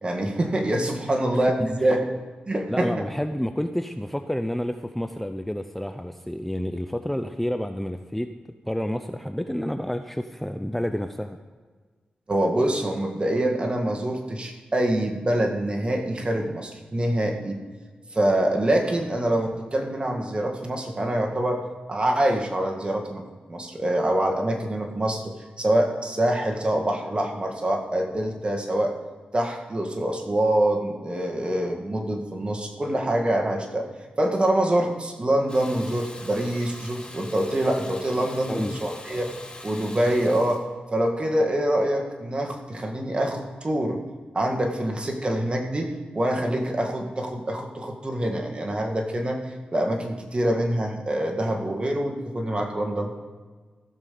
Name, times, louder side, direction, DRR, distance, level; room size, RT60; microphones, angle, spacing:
voice 1, 0.0-2.1 2.5-3.1 12.3-17.6 18.1-21.6 21.9-28.9 29.3-33.9 34.2-39.3 39.6-40.6 40.9-44.0 44.3-53.1, right 1 dB, 35° right, 2 dB, 1.9 m, -25 dB
voice 2, 2.7-8.3 8.6-11.4 38.2-38.9, equal, 5° left, 7 dB, 0.6 m, -29 dB
Water tap faucet / Bathtub (filling or washing), 35.5-40.6, left 2 dB, 30° left, 2.3 m, -42 dB
14.5 x 5.4 x 6.9 m, 1.4 s
cardioid pair, 65°, 3 cm